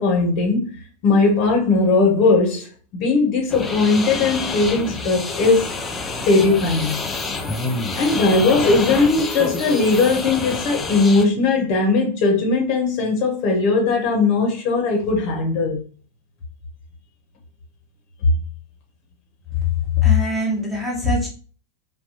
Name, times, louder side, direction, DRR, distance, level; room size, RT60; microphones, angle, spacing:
voice 1, 0.0-5.8 6.3-7.0 7.9-15.8, left 3 dB, 45° left, 1.1 m, -19 dB
sound 1, 3.5-11.2, left 3 dB, 15° left, 0.5 m, -28 dB
voice 2, 20.0-21.3, left 5 dB, 5° right, 1.1 m, -20 dB
4.0 x 2.2 x 2.8 m
figure-of-eight pair, 90°, 0 cm